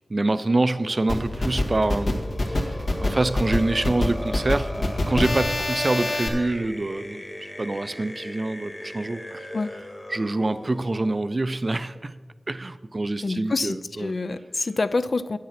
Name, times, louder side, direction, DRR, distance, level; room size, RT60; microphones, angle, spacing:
voice 1, 0.1-4.7 5.1-9.5 10.1-12.1 12.5-14.1, right 2 dB, 35° right, 13 dB, 0.5 m, -26 dB
sound 1, 0.6-11.2, left 1 dB, 20° left, 1.3 m, -37 dB
sound 2, 1.1-6.3, left 2 dB, 75° left, 1.9 m, -25 dB
voice 2, 13.2-15.4, left 3 dB, 55° left, 13 dB, 0.4 m, -27 dB
9.4 x 8.1 x 5.8 m, 1.3 s
wide cardioid pair, 90°, 0 cm